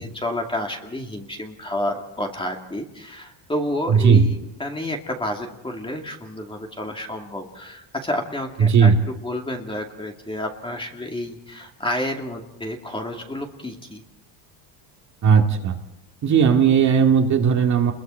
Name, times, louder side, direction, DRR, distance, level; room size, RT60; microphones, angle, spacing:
voice 1, 0.0-14.0, left 1 dB, 10° left, 2 dB, 2.4 m, -30 dB
voice 2, 3.9-4.2 8.6-9.0 15.2-15.8 16.2-17.9, right 6 dB, 40° right, 2 dB, 2.2 m, -16 dB
29.5 x 21.5 x 4.5 m, 0.90 s
cardioid pair, 135°, 45 cm